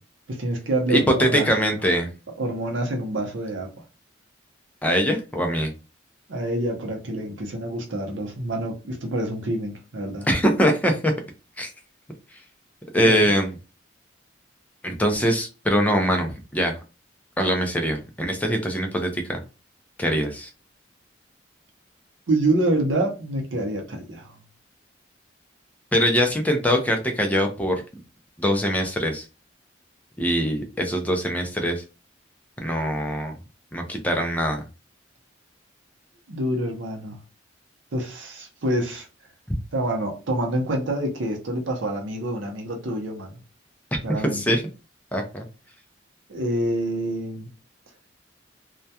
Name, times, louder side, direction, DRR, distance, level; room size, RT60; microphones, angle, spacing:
voice 1, 0.3-1.5 2.4-3.7 6.3-10.3 13.0-13.3 22.3-24.3 36.3-37.2 37.9-39.1 39.7-43.4 44.0-44.6 46.3-47.5, right 1 dB, 85° right, 0.6 m, -27 dB
voice 2, 0.9-2.1 4.8-5.7 10.3-11.1 11.6-11.7 12.9-13.5 14.8-16.8 17.4-19.4 20.0-20.5 25.9-27.8 28.4-29.3 30.2-31.8 32.6-33.4 33.7-34.6 44.3-44.6 45.1-45.5, equal, 10° left, 0.3 m, -22 dB
2.2 x 2.2 x 2.7 m
head